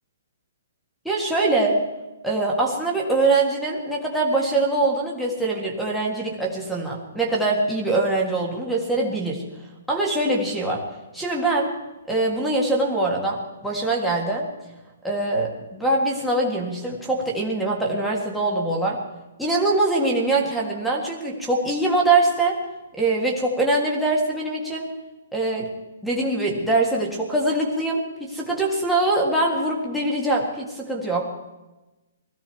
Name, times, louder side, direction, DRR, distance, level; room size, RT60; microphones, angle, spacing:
voice 1, 1.1-1.8 2.2-9.4 9.9-10.9 11.1-11.7 12.1-14.5 15.0-19.0 19.4-22.6 22.9-24.9 25.3-25.7 26.0-31.3, right 2 dB, ahead, -1 dB, 1.7 m, -23 dB
20.5 x 15.0 x 4.6 m, 1.1 s
hypercardioid pair, 180°, 0 cm